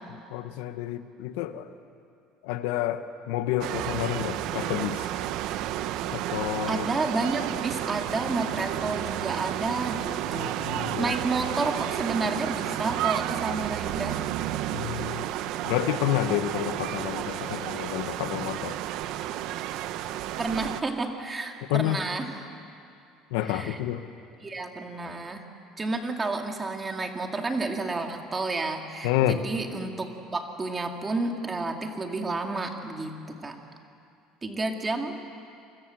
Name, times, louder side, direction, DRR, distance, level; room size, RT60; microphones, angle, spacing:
voice 1, 0.3-1.7 2.4-5.1 6.1-6.8 10.3-11.1 14.7-15.2 15.6-18.8 21.7-22.0 23.3-24.0 29.0-29.4, left 12 dB, 90° left, 10 dB, 1.4 m, -29 dB
sound 1, 3.6-20.8, right 12 dB, 60° right, 1.0 m, -31 dB
voice 2, 6.7-10.6 11.0-14.2 20.4-22.3 23.4-23.8 24.4-25.4 25.8-33.6 34.4-35.2, right 3 dB, 15° right, 3 dB, 2.4 m, -30 dB
29.5 x 24.5 x 7.8 m, 2.5 s
cardioid pair, 155°, 0 cm